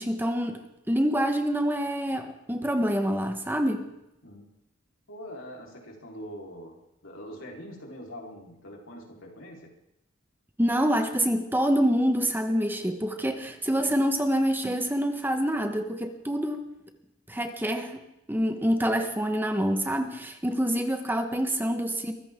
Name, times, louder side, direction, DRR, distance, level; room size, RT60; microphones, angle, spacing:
voice 1, 0.0-3.9 10.6-16.7 17.3-22.1, equal, 10° right, 6 dB, 1.3 m, -26 dB
voice 2, 5.1-9.7, equal, 85° left, -1 dB, 4.2 m, -43 dB
23.5 x 15.0 x 3.7 m, 0.85 s
head